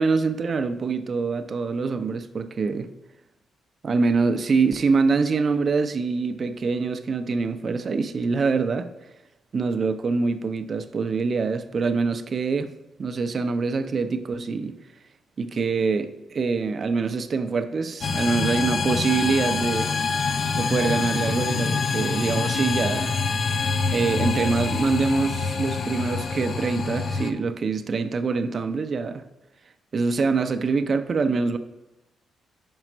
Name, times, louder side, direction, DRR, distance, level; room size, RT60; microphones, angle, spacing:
voice 1, 0.0-2.9 3.8-8.9 9.5-12.7 13.0-14.8 15.4-19.9 20.5-23.2 23.9-29.2 29.9-31.6, right 4 dB, 45° right, 0.6 m, -24 dB
sound 1, 18.0-27.3, left 4 dB, 55° left, 0.6 m, -26 dB
5.5 x 5.0 x 6.0 m
cardioid pair, 80°, 0 cm